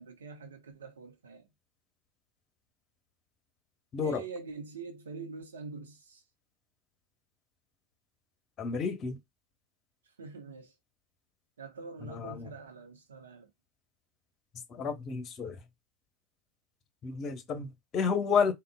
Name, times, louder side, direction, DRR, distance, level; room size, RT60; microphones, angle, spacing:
voice 1, 0.0-1.5 4.0-6.2 10.2-10.7 11.6-13.5, right 4 dB, 75° right, 0.7 m, -44 dB
voice 2, 3.9-4.2 8.6-9.2 12.0-12.5 14.7-15.6 17.0-18.5, left 6 dB, 35° left, 0.8 m, -31 dB
3.6 x 2.1 x 2.2 m
figure-of-eight pair, 80°, 0 cm